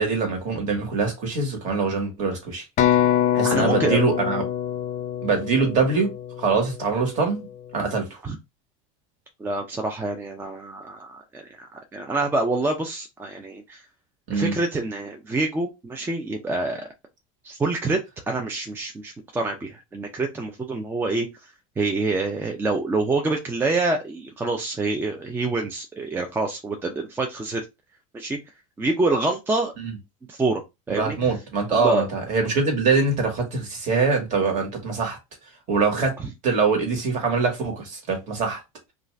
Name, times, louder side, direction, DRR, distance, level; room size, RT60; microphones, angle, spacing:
voice 1, 0.0-2.6 3.3-4.4 5.2-6.1 6.4-7.5 7.7-8.2 14.3-14.5 29.8-29.9 30.9-35.2 35.7-36.2 36.4-38.6, right 4 dB, 45° right, 1.4 m, -23 dB
sound 1, 2.8-6.6, left 11 dB, 40° left, 0.5 m, -24 dB
voice 2, 3.4-4.0 8.2-8.4 9.4-13.8 14.3-16.9 17.4-18.0 18.3-21.3 21.8-27.6 28.1-28.4 28.8-29.7 30.3-30.6 30.9-31.2 31.8-32.1 36.2-36.3, right 3 dB, 10° right, 0.4 m, -26 dB
2.5 x 2.4 x 3.2 m
supercardioid pair, 130°, 18 cm